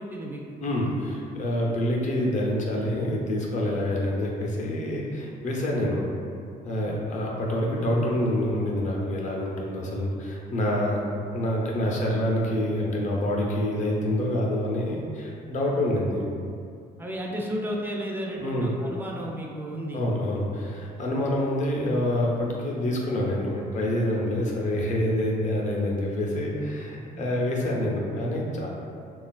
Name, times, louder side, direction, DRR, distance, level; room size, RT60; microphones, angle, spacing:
voice 1, 0.0-0.6 6.9-7.1 15.7-16.0 17.0-20.0 21.1-21.4 27.1-27.3, equal, 10° right, -1 dB, 0.4 m, -34 dB
voice 2, 0.6-6.1 6.6-16.2 18.4-18.7 19.9-28.7, left 1 dB, 45° left, -2 dB, 0.6 m, -27 dB
3.6 x 2.4 x 2.3 m, 2.4 s
cardioid pair, 110°, 17 cm